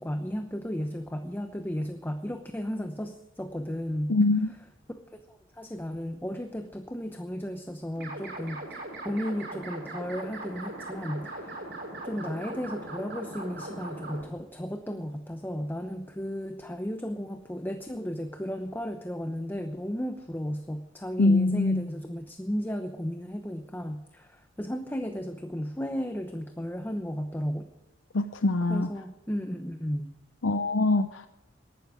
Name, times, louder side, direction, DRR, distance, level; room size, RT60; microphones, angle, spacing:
voice 1, 0.0-4.2 5.3-11.8 12.0-27.7 28.7-30.1, equal, 10° left, 7 dB, 0.8 m, -34 dB
voice 2, 4.1-4.5 21.2-21.9 28.1-28.9 30.4-31.3, left 2 dB, 70° left, 9 dB, 0.7 m, -23 dB
sound 1, 7.9-14.2, right 2 dB, 60° right, 7.1 m, -39 dB
19.0 x 12.0 x 5.0 m, 0.91 s
head